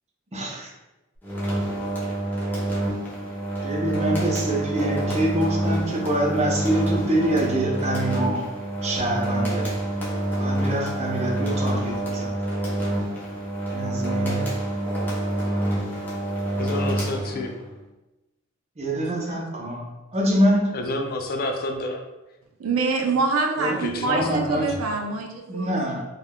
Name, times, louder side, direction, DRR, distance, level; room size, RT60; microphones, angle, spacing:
voice 1, 0.3-0.7 3.6-8.5 8.8-9.7 10.4-12.3 13.7-14.4 18.8-20.7 23.6-24.9 25.5-26.0, right 1 dB, 35° right, -2 dB, 0.6 m, -25 dB
sound 1, 1.2-17.7, right 1 dB, 10° left, 0.6 m, -27 dB
voice 2, 16.6-17.5 20.7-22.0 23.8-24.7, left 2 dB, 45° left, 3 dB, 0.4 m, -30 dB
voice 3, 22.6-25.8, right 4 dB, 85° right, 3 dB, 0.4 m, -25 dB
3.4 x 2.3 x 2.2 m, 1.0 s
head